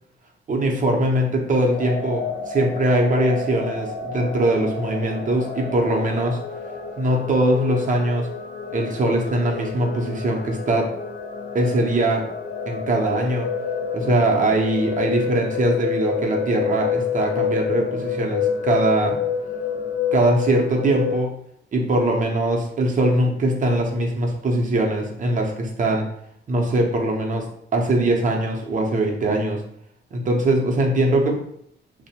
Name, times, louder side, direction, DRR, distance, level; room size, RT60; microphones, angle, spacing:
voice 1, 0.5-6.4 7.0-8.3 8.7-10.9 11.5-12.3 12.7-13.5 13.9-19.2 20.1-21.3 21.7-26.1 26.5-27.5 27.7-29.6 30.1-31.4, right 1 dB, 40° right, 1 dB, 0.6 m, -21 dB
sound 1, 1.7-21.2, left 6 dB, 45° left, 0.4 m, -28 dB
2.6 x 2.0 x 2.8 m, 0.69 s
cardioid pair, 90°, 20 cm